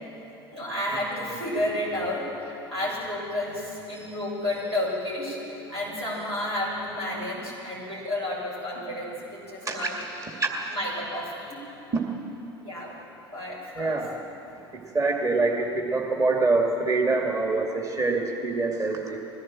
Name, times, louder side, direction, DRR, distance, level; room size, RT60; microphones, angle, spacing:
voice 1, 0.5-2.2 2.7-5.4 5.7-9.9 10.7-11.6 12.6-12.9 13.3-14.0, left 1 dB, 85° right, -6 dB, 6.7 m, -31 dB
voice 2, 9.6-10.7 11.9-12.0 13.8-14.1 14.7-19.3, right 3 dB, 25° right, 0 dB, 2.3 m, -26 dB
21.5 x 16.5 x 7.5 m, 2.8 s
figure-of-eight pair, 70°, 14 cm